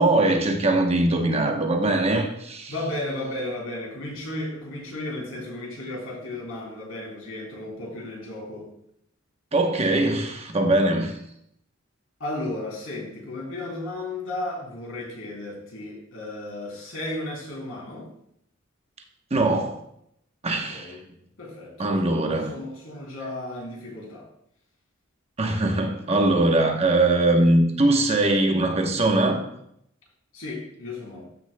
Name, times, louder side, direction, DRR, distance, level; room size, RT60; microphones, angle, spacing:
voice 1, 0.0-2.7 9.5-11.2 19.3-19.7 20.4-20.9 21.8-22.5 25.4-29.4, right 2 dB, 30° right, 1.0 m, -21 dB
voice 2, 2.7-8.7 12.2-18.1 20.5-21.0 21.4-22.2 22.5-24.3 30.3-31.3, left 1 dB, 85° left, 3.1 m, -34 dB
14.0 x 6.3 x 2.2 m
head